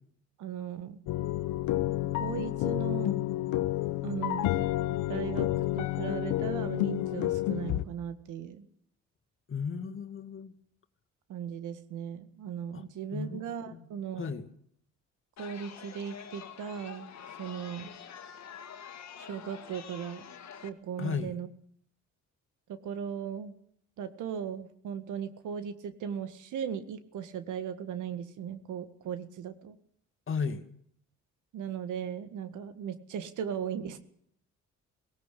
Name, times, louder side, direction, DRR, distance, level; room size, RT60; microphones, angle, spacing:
voice 1, 0.4-1.0 2.2-3.2 4.0-4.5 5.1-5.5 5.8-8.7 11.3-14.3 15.4-17.1 17.4-17.9 19.2-20.2 20.6-21.5 22.7-23.5 24.0-29.8 31.5-34.0, right 8 dB, 80° right, 11 dB, 1.8 m, -37 dB
sound 1, 1.1-7.9, left 15 dB, 85° left, 1.0 m, -30 dB
voice 2, 9.5-10.5 12.7-12.8 13.1-13.9 14.2-14.5 21.0-21.3 30.3-30.7, left 5 dB, 40° left, 6 dB, 2.2 m, -35 dB
Chatter, 15.4-20.7, left 8 dB, 60° left, 2.0 m, -47 dB
18.0 x 17.5 x 8.5 m, 0.65 s
cardioid pair, 90°, 30 cm